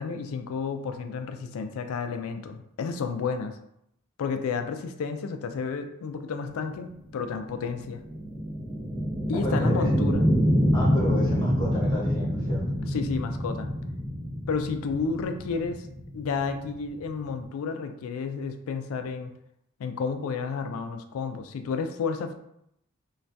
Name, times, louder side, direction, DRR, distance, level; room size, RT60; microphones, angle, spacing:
voice 1, 0.0-3.6 4.2-8.0 9.3-10.3 12.9-13.7 14.5-15.9 16.1-19.3 19.8-22.3, left 5 dB, 75° left, 7 dB, 0.3 m, -31 dB
sound 1, 6.7-17.4, equal, 5° right, 0.3 m, -27 dB
voice 2, 9.3-9.9 10.7-12.6, left 1 dB, 20° left, -5 dB, 1.0 m, -31 dB
2.6 x 2.3 x 3.2 m, 0.77 s
head